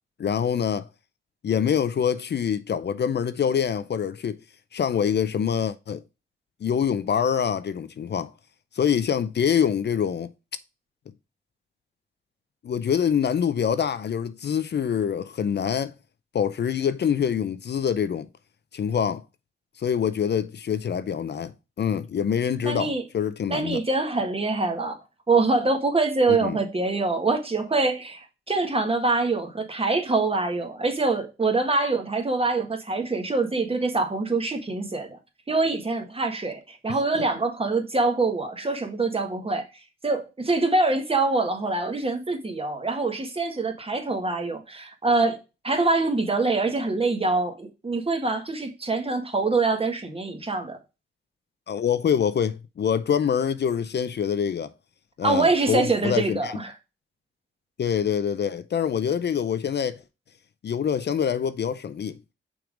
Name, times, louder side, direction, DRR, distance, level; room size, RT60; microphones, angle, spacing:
voice 1, 0.2-0.9 1.4-4.4 4.7-6.0 6.6-8.3 8.8-10.3 12.6-15.9 16.3-18.3 18.7-19.2 19.8-21.5 21.8-23.8 26.3-26.6 37.2-37.3 51.7-54.7 55.2-56.5 57.8-60.0 60.6-62.2, left 8 dB, 55° left, 0.5 m, -25 dB
voice 2, 22.6-23.0 23.5-25.0 25.3-35.2 35.5-39.6 40.0-50.8 55.2-56.7, right 3 dB, 30° right, 1.5 m, -24 dB
6.0 x 3.7 x 4.9 m
cardioid pair, 90°, 21 cm